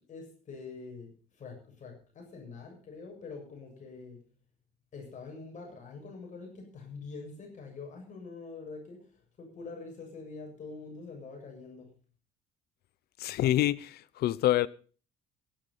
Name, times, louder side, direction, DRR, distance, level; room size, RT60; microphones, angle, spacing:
voice 1, 0.1-4.2 4.9-9.0 9.4-11.9, left 4 dB, 45° left, 7.5 m, -45 dB
voice 2, 13.2-14.7, left 13 dB, 70° left, 0.7 m, -26 dB
16.0 x 11.0 x 5.7 m
cardioid pair, 110°, 17 cm